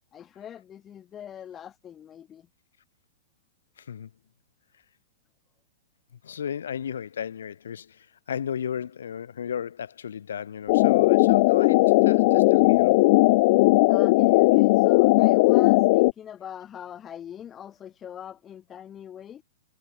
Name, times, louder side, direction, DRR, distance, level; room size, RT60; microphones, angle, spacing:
voice 1, 0.1-2.5 13.9-19.4, left 9 dB, 15° left, 4.3 m, -42 dB
voice 2, 3.8-4.1 6.2-13.0, left 8 dB, 90° left, 3.3 m, -34 dB
sound 1, 10.7-16.1, left 23 dB, 40° left, 1.2 m, -18 dB
hypercardioid pair, 160°, 0 cm